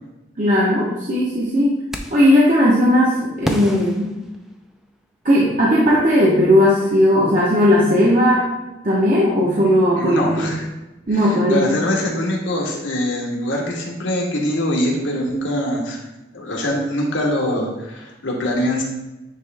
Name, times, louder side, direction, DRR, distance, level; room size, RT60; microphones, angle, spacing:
voice 1, 0.4-1.8 2.1-4.1 5.2-8.4 8.8-10.5 11.1-11.8, equal, 45° right, -7 dB, 1.0 m, -16 dB
sound 1, 1.9-2.4 3.4-5.0, equal, ahead, 0.4 m, -29 dB
voice 2, 10.0-10.7 11.2-16.0 16.3-18.8, left 1 dB, 85° left, -2 dB, 1.5 m, -23 dB
9.3 x 3.2 x 3.4 m, 1.0 s
head